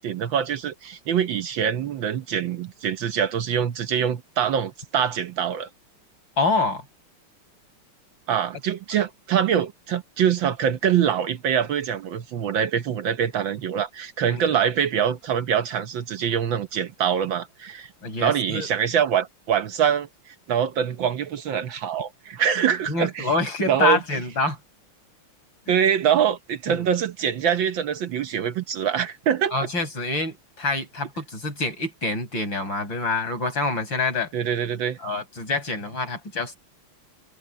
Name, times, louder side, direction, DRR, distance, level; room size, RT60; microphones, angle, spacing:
voice 1, 0.0-5.7 8.3-17.9 18.2-23.3 23.7-24.0 25.7-29.5 34.3-35.0, right 8 dB, 65° right, 1.5 m, -24 dB
voice 2, 6.4-6.8 14.3-14.6 18.0-18.7 22.9-24.6 25.7-25.8 26.7-26.8 29.5-34.3 35.0-36.6, left 3 dB, 55° left, 7.7 m, -26 dB
omnidirectional pair, 2.4 m